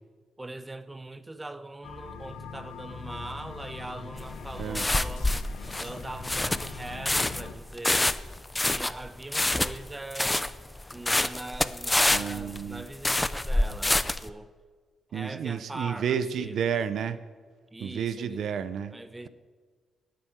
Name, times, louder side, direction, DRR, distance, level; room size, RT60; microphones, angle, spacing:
voice 1, 0.4-5.4 5.8-8.2 8.7-10.6 10.9-14.5 15.1-16.5 17.7-18.5 18.9-19.3, right 2 dB, 15° right, 0.8 m, -41 dB
sound 1, 1.8-7.5, left 5 dB, 90° left, 1.2 m, -42 dB
sound 2, 4.2-14.3, left 1 dB, 15° left, 0.6 m, -27 dB
voice 2, 12.1-12.8 15.1-17.2 17.8-18.9, right 7 dB, 70° right, 0.7 m, -31 dB
11.0 x 9.1 x 9.4 m
cardioid pair, 85°, 0 cm